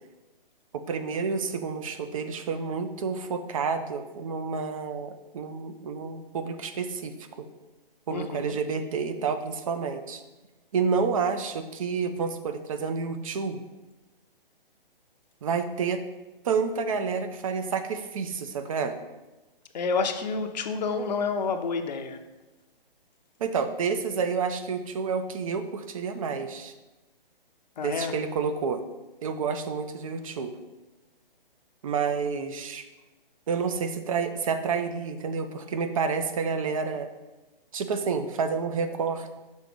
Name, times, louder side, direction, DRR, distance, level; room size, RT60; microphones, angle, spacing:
voice 1, 0.7-7.5 8.1-10.2 10.7-13.6 15.4-16.0 16.4-19.0 23.4-26.7 27.8-28.8 29.2-30.5 31.8-32.8 33.5-37.1 37.7-39.3, right 5 dB, 35° right, 8 dB, 0.5 m, -29 dB
voice 2, 8.1-8.5 19.7-22.2 27.8-28.1, left 4 dB, 50° left, 6 dB, 0.6 m, -29 dB
6.3 x 4.0 x 5.1 m, 1.1 s
hypercardioid pair, 140°, 29 cm